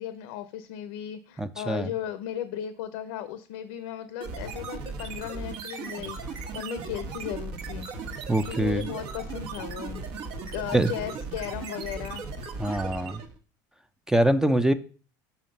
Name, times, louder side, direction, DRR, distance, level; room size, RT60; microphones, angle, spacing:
voice 1, 0.0-8.1 8.4-10.0 10.5-12.2, left 10 dB, 80° left, 0.7 m, -36 dB
voice 2, 1.4-1.9 8.3-8.9 10.7-10.9 12.6-13.2 14.1-14.7, right 1 dB, 5° right, 0.5 m, -24 dB
sound 1, 4.2-13.4, right 4 dB, 60° right, 1.3 m, -37 dB
5.7 x 5.0 x 5.3 m
supercardioid pair, 110°, 10 cm